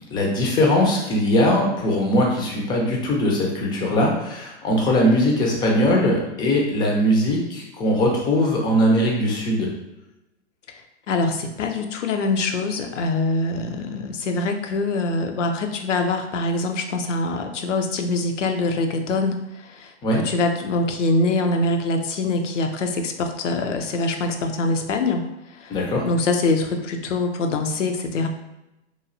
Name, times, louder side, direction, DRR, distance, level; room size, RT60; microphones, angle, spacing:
voice 1, 0.1-9.7 20.0-20.2 25.7-26.1, left 1 dB, 15° left, -1 dB, 0.4 m, -20 dB
voice 2, 11.1-19.4 19.7-25.2 25.6-25.7 26.0-28.3, left 2 dB, 90° left, 5 dB, 0.5 m, -24 dB
3.1 x 2.3 x 2.5 m, 0.93 s
hypercardioid pair, 115°, 36 cm